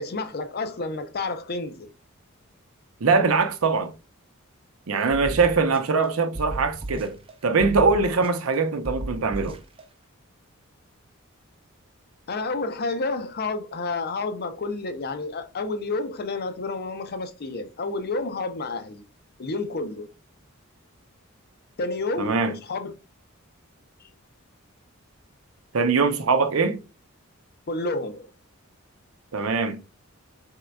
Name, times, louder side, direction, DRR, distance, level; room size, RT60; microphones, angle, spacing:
voice 1, 0.0-1.9 12.3-19.0 19.4-20.1 21.8-22.9 24.0-24.1 27.7-28.3, left 3 dB, 50° left, 0.6 m, -30 dB
voice 2, 3.0-3.9 4.9-7.2 7.4-9.6 22.2-22.6 25.7-26.8 29.3-29.8, right 4 dB, 80° right, 0.6 m, -22 dB
sound 1, 5.1-6.1 6.3-7.3 7.6-8.6 8.8-9.8, right 1 dB, 25° right, 0.6 m, -35 dB
4.3 x 3.7 x 2.2 m
head